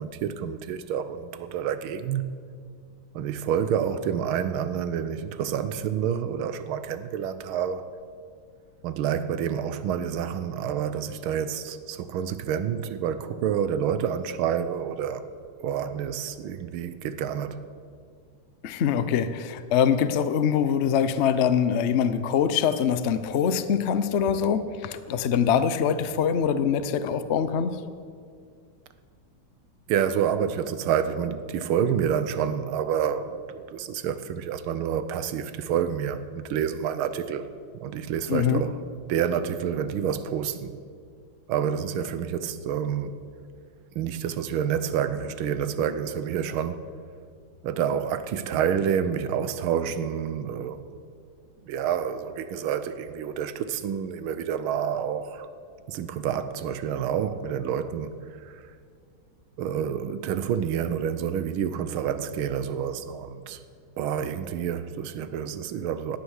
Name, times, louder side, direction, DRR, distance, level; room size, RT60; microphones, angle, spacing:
voice 1, 0.0-2.2 3.1-7.9 8.8-15.2 15.6-17.6 29.9-37.5 37.8-38.8 39.1-40.7 41.5-43.2 43.9-46.8 47.6-50.9 51.6-55.5 55.9-58.6 59.6-63.6 64.0-66.2, right 8 dB, 85° right, 1.6 m, -28 dB
voice 2, 18.6-27.8 38.3-38.6, left 8 dB, 80° left, 0.6 m, -24 dB
17.0 x 11.5 x 6.4 m
omnidirectional pair, 2.2 m